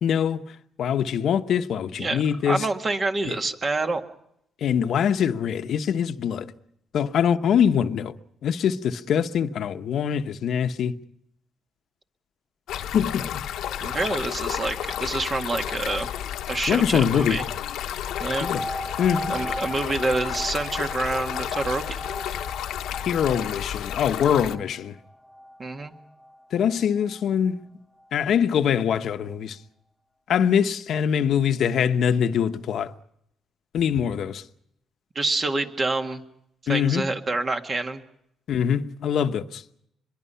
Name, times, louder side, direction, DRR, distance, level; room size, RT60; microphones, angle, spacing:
voice 1, 0.0-0.4 0.8-2.7 3.2-3.3 4.6-6.5 6.9-8.1 8.4-11.0 12.9-13.4 16.7-17.4 18.4-18.7 19.0-19.3 23.0-24.9 26.5-27.6 28.1-29.6 30.3-32.9 33.7-34.4 36.7-37.0 38.5-39.6, left 8 dB, 70° left, 1.0 m, -23 dB
voice 2, 2.0-4.0 13.8-16.1 16.5-17.5 18.2-18.5 19.3-22.0 25.6-25.9 35.2-36.2 36.7-38.0, right 3 dB, 35° right, 2.0 m, -27 dB
Stream, 12.7-24.6, left 10 dB, 85° left, 1.1 m, -32 dB
sound 1, 18.1-27.4 28.0-28.1, equal, 5° right, 1.1 m, -38 dB
24.0 x 22.5 x 5.7 m
cardioid pair, 90°, 0 cm